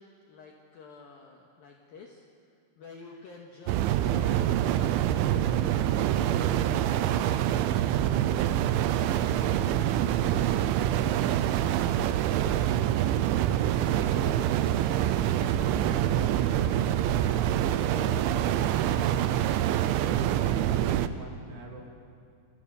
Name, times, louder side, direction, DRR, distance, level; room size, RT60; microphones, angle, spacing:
voice 1, 0.0-2.3 2.8-7.4, left 4 dB, 60° left, 1 dB, 2.9 m, -49 dB
sound 1, 3.7-21.1, right 11 dB, 85° right, 3.2 m, -26 dB
voice 2, 13.9-14.3 15.1-16.8 17.2-20.0 20.4-21.9, right 2 dB, 60° right, 0 dB, 5.1 m, -44 dB
28.5 x 27.0 x 7.0 m, 2.3 s
omnidirectional pair, 5.4 m